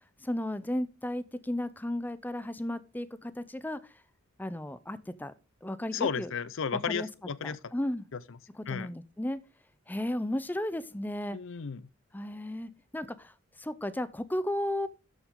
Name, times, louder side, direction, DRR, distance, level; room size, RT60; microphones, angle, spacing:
voice 1, 0.2-3.8 4.4-5.3 5.6-6.3 6.8-7.1 7.4-8.1 8.5-9.4 9.9-11.4 12.1-14.9, left 1 dB, 10° left, 0.5 m, -34 dB
voice 2, 5.9-7.6 8.7-8.9 11.3-11.8, left 6 dB, 65° left, 0.6 m, -33 dB
13.0 x 6.1 x 3.6 m
head